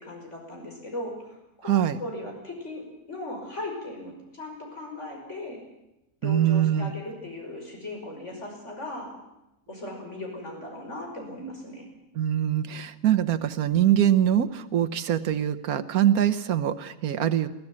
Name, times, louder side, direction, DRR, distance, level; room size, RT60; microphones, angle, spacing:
voice 1, 0.0-5.6 6.2-9.1 9.7-11.9, left 1 dB, 50° left, 1 dB, 6.1 m, -38 dB
voice 2, 1.7-2.0 6.2-6.9 12.1-17.5, right 10 dB, 75° right, 11 dB, 1.5 m, -23 dB
22.5 x 15.5 x 8.7 m, 0.93 s
omnidirectional pair, 1.6 m